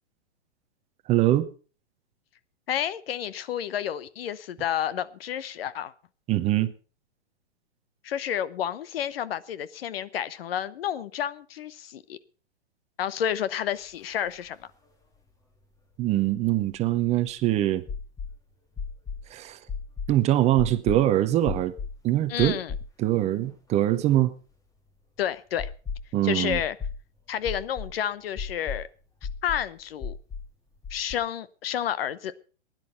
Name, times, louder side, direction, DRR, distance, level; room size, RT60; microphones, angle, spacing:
voice 1, 1.1-1.5 6.3-6.7 16.0-17.8 19.3-19.6 20.1-21.7 22.0-22.6 23.0-24.3 26.1-26.6, right 14 dB, 20° right, 0.7 m, -23 dB
voice 2, 2.7-5.9 8.0-12.2 13.0-14.6 22.3-22.7 25.2-25.7 26.2-26.8 27.3-28.9 29.4-30.1 30.9-32.3, left 10 dB, 60° left, 1.0 m, -30 dB
sound 1, 14.1-14.2 14.4-14.5 16.1-17.3 17.9-18.3 18.8-19.2 19.7-20.2 20.6-21.0 21.5-22.0 22.4-23.2 23.5-23.6 25.6-26.1 26.5-27.0 27.4-27.9 28.4-28.8 29.2-29.7 30.0-30.5 30.8-31.2, left 5 dB, 10° left, 1.5 m, -34 dB
16.0 x 10.5 x 5.4 m
hypercardioid pair, 135°, 34 cm